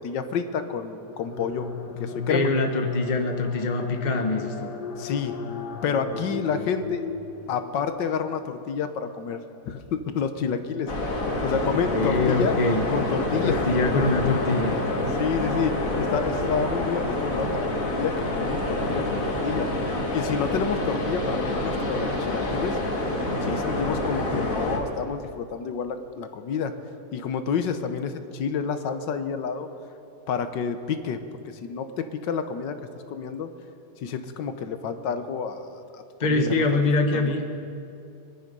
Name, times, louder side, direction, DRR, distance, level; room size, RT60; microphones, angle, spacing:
voice 1, 0.0-1.7 2.0-2.5 5.0-5.4 5.8-7.0 7.5-9.4 9.7-12.6 12.9-13.7 15.2-19.7 20.1-22.8 23.4-26.7 27.1-29.7 30.3-31.2 31.6-32.8 33.1-33.5 34.0-35.7 35.9-36.0 36.3-36.6 37.1-37.3, left 6 dB, 90° left, 9 dB, 1.6 m, -29 dB
sound 1, 1.0-7.9, left 5 dB, 70° left, 1.5 m, -35 dB
voice 2, 2.3-4.7 6.5-6.7 11.8-12.8 13.4-14.8 36.2-37.4, left 3 dB, 30° left, 5 dB, 1.1 m, -24 dB
sound 2, 10.9-24.8, left 1 dB, 50° left, 2.2 m, -27 dB
24.0 x 10.5 x 5.4 m, 2.7 s
omnidirectional pair, 1.9 m